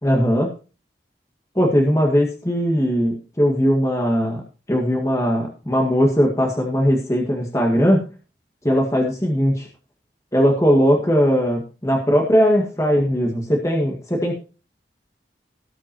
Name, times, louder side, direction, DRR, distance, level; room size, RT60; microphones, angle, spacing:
voice 1, 0.0-0.5 1.6-4.4 4.7-8.1 8.6-9.7 10.3-14.3, equal, 20° left, 0 dB, 1.8 m, -19 dB
18.0 x 8.2 x 2.9 m, 0.34 s
head